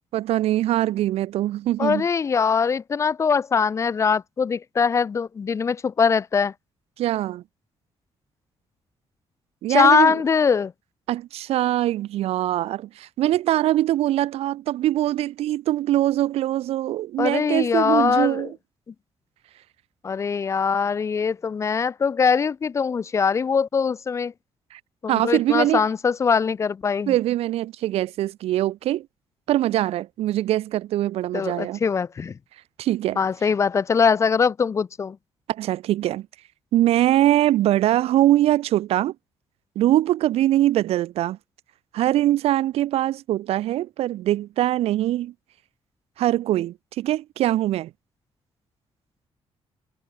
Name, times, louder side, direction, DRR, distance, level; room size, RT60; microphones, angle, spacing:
voice 1, 0.1-2.0 7.0-7.4 9.6-10.2 11.1-18.6 24.7-24.8 25.1-25.8 27.1-29.1 29.5-31.8 32.8-33.2 35.5-36.3 36.7-39.1 39.8-41.4 41.9-45.3 46.2-47.9, right 14 dB, 85° right, 0.5 m, -22 dB
voice 2, 1.8-6.5 9.7-10.7 17.2-18.5 20.0-24.3 25.0-27.1 31.3-32.3 33.2-35.2, left 6 dB, 30° left, 0.5 m, -22 dB
cardioid pair, 155°, 10 cm